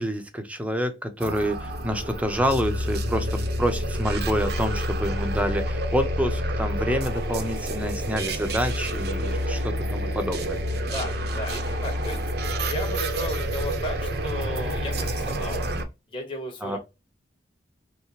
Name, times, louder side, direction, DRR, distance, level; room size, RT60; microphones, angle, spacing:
voice 1, 0.0-10.6 16.6-16.8, equal, 10° right, 0.7 m, -28 dB
sound 1, 1.2-15.8, equal, 60° right, 0.8 m, -28 dB
voice 2, 10.9-12.2 12.6-15.6 16.1-16.8, left 1 dB, 30° left, 1.3 m, -35 dB
5.6 x 2.1 x 3.1 m
head